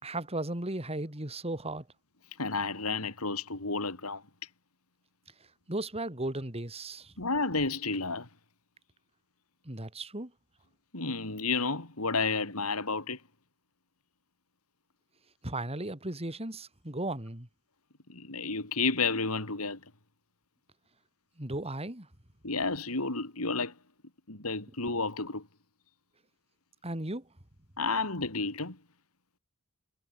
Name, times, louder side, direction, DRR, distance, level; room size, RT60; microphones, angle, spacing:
voice 1, 0.0-1.9 5.7-7.1 9.7-10.3 15.4-17.5 21.4-22.1 26.8-27.3, right 2 dB, 30° right, 3.6 m, -36 dB
voice 2, 2.4-4.2 7.2-8.3 10.9-13.2 18.1-19.8 22.4-23.7 24.3-25.5 27.8-28.8, left 4 dB, 85° left, 4.3 m, -31 dB
head